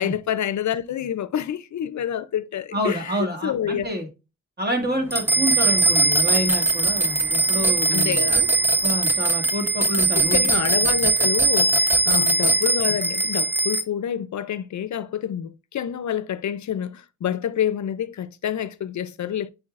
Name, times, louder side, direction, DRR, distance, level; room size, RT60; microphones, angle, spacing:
voice 1, 0.0-3.1 3.4-3.9 7.9-8.5 10.2-11.8 12.1-19.5, left 9 dB, 65° left, 0.5 m, -27 dB
voice 2, 2.7-4.1 4.6-8.2 8.8-10.4 12.1-12.3, equal, 30° right, 1.9 m, -28 dB
sound 1, 5.1-13.8, right 2 dB, 5° right, 0.7 m, -20 dB
8.5 x 4.6 x 2.4 m
wide cardioid pair, 110°, 31 cm